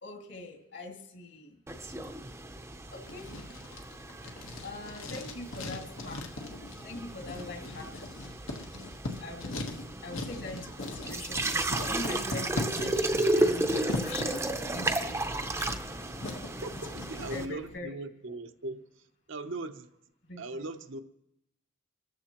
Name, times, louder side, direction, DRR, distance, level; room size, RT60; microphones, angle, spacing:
voice 1, 0.0-1.6 2.9-3.3 4.6-6.4 6.8-8.1 9.2-15.5 17.1-17.9 20.3-20.7, left 2 dB, 60° left, 2.2 m, -43 dB
sound 1, 1.7-17.5, right 1 dB, 15° right, 0.6 m, -34 dB
Writing, 3.1-17.4, left 2 dB, 85° left, 1.3 m, -40 dB
Fire, 11.7-17.8, left 2 dB, 30° left, 0.6 m, -52 dB
voice 2, 16.6-19.9 20.4-21.0, right 2 dB, 70° right, 0.8 m, -39 dB
26.5 x 14.0 x 3.0 m
head